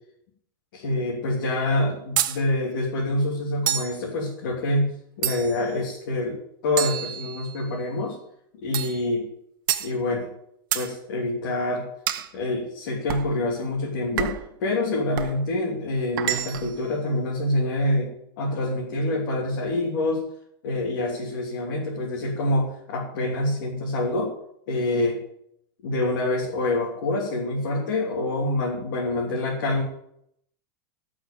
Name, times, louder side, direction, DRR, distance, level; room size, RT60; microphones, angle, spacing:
voice 1, 0.7-4.9 5.2-6.4 6.6-8.2 8.6-9.3 9.8-10.3 10.7-11.9 12.3-18.1 18.4-20.2 20.6-24.3 24.7-25.2 25.8-29.8, left 2 dB, 60° left, -3 dB, 3.1 m, -26 dB
sound 1, 2.2-2.4 3.7-4.0 5.2-5.7 6.8-7.7 8.7-9.0 9.7-9.9 10.7-10.9 12.1-12.3 13.1-13.3 14.2-14.5 15.2-15.4 16.2-16.8, right 12 dB, 65° right, 1.0 m, -28 dB
12.0 x 6.3 x 9.0 m, 0.73 s
supercardioid pair, 170°, 12 cm